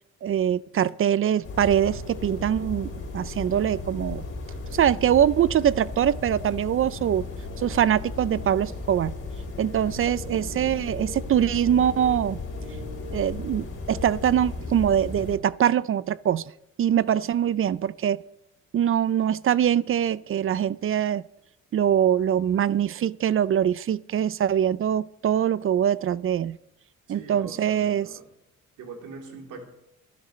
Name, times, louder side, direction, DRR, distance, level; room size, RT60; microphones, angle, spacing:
voice 1, 0.2-4.2 4.7-7.3 7.6-9.1 9.6-12.4 13.1-16.4 16.8-18.2 18.7-21.2 21.7-26.6 27.1-28.1, right 9 dB, 45° right, 0.5 m, -23 dB
sound 1, 1.4-15.4, left 3 dB, 45° left, 3.8 m, -35 dB
voice 2, 27.1-28.2 28.8-29.6, right 4 dB, 90° right, 3.4 m, -42 dB
25.0 x 11.0 x 3.2 m
cardioid pair, 90°, 30 cm